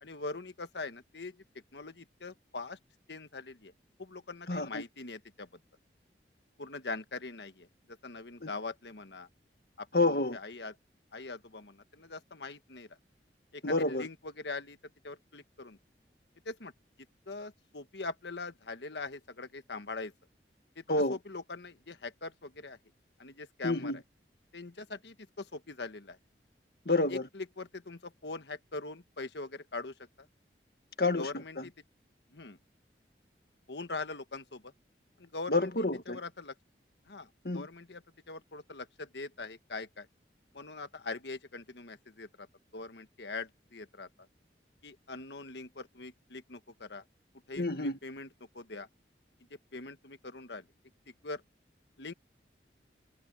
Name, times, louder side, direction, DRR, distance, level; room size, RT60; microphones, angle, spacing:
voice 1, 0.0-1.4 1.7-2.8 3.1-3.7 4.0-5.5 6.6-7.7 8.0-9.3 9.8-9.9 10.3-10.7 11.1-12.9 13.5-13.6 13.9-14.8 15.0-15.8 16.4-16.7 17.3-20.1 20.8-20.9 21.1-22.8 23.2-23.9 24.5-26.2 27.1-29.9 31.2-31.7 32.3-32.6 33.7-34.7 35.2-35.7 36.1-36.5 37.1-37.3 37.5-40.1 40.5-42.5 42.7-44.1 44.8-47.0 47.5-48.3 48.5-48.9 49.7-50.6 51.2-51.4 52.0-52.1, left 3 dB, 80° left, 1.4 m, -42 dB
voice 2, 4.5-4.8 8.4-8.5 9.9-10.4 13.6-14.1 20.9-21.2 23.6-24.0 26.9-27.3 31.0-31.3 31.6-31.7 35.5-36.2 37.4-37.7 47.6-48.0, left 2 dB, 60° left, 1.8 m, -29 dB
head